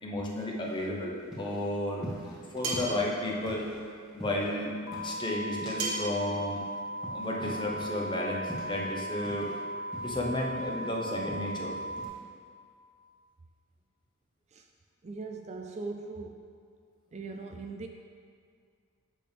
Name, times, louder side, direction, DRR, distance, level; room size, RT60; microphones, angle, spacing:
voice 1, 0.0-2.1 2.5-3.7 4.1-4.7 5.0-6.6 7.1-9.5 10.0-11.8, left 1 dB, 20° left, -2 dB, 1.0 m, -32 dB
sound 1, 0.6-6.0 6.3-9.6 9.9-11.6 12.0-12.2, right 1 dB, ahead, 2.1 m, -44 dB
sound 2, 2.6-3.0 5.8-6.2, right 3 dB, 75° right, 1.5 m, -32 dB
sound 3, 4.9-12.1, right 1 dB, 85° left, 0.9 m, -38 dB
voice 2, 15.0-16.4 17.1-17.9, right 3 dB, 30° right, 3 dB, 0.4 m, -40 dB
8.4 x 6.8 x 3.5 m, 2.1 s
head